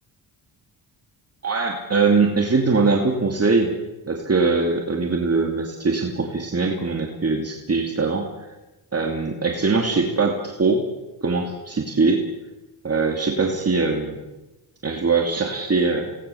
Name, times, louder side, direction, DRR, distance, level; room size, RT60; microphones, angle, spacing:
voice 1, 1.4-3.7 4.0-8.5 8.9-10.8 11.2-12.2 12.8-14.2 14.8-16.2, right 4 dB, 30° right, 1 dB, 2.7 m, -22 dB
27.5 x 19.0 x 7.1 m, 1.0 s
cardioid pair, 85°, 46 cm